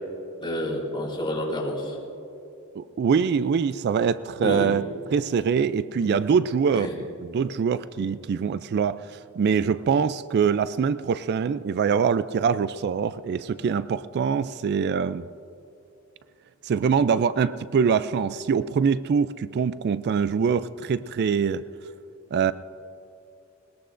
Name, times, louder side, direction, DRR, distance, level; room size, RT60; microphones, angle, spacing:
voice 1, 0.4-2.0 4.4-4.7 6.0-6.1 6.7-7.0, left 1 dB, 25° left, -3 dB, 3.4 m, -29 dB
voice 2, 2.8-4.8 5.1-15.2 16.6-21.6 22.3-22.5, right 6 dB, 50° right, 15 dB, 0.3 m, -24 dB
20.5 x 20.5 x 2.5 m, 2.7 s
head